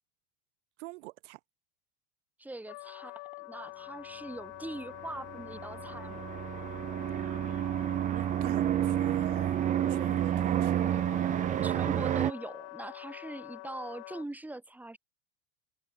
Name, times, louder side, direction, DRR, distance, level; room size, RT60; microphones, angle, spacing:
voice 1, 0.8-1.4 8.1-10.9, right 22 dB, 80° right, 1.6 m, -42 dB
voice 2, 2.4-6.2 11.6-15.0, right 2 dB, 5° right, 3.7 m, -42 dB
Wind instrument woodwind instrument, 2.7-14.3, left 25 dB, 45° left, 0.7 m, -46 dB
sound 1, 5.0-12.3, right 11 dB, 20° right, 0.5 m, -30 dB
supercardioid pair, 150°, 35 cm